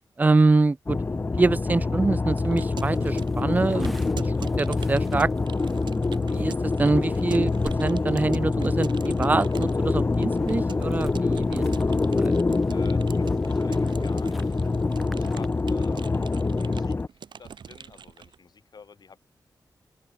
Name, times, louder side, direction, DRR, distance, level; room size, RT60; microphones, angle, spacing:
voice 1, 0.2-1.0 1.4-5.3 5.8-6.5 6.8-7.5 7.8-11.7 12.1-12.3, right 3 dB, 20° right, 0.4 m, -25 dB
sound 1, 0.9-17.1, left 3 dB, 30° left, 0.9 m, -25 dB
Keyboard (musical) / Computer keyboard, 2.3-18.4, right 7 dB, 90° right, 2.0 m, -44 dB
sound 2, 2.8-15.5, equal, ahead, 3.2 m, -48 dB
voice 2, 12.7-14.6 15.1-19.2, left 5 dB, 60° left, 6.0 m, -49 dB
open air
wide cardioid pair, 125°, 8 cm